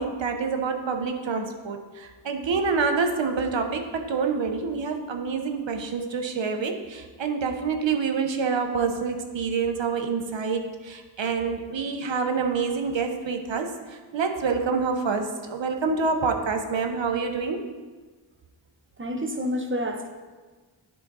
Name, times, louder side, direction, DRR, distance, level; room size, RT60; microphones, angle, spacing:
voice 1, 0.0-17.6, right 5 dB, 70° right, 5 dB, 0.9 m, -27 dB
voice 2, 19.0-20.1, equal, 25° right, 4 dB, 1.0 m, -28 dB
11.0 x 3.8 x 4.0 m, 1.4 s
cardioid pair, 60°, 47 cm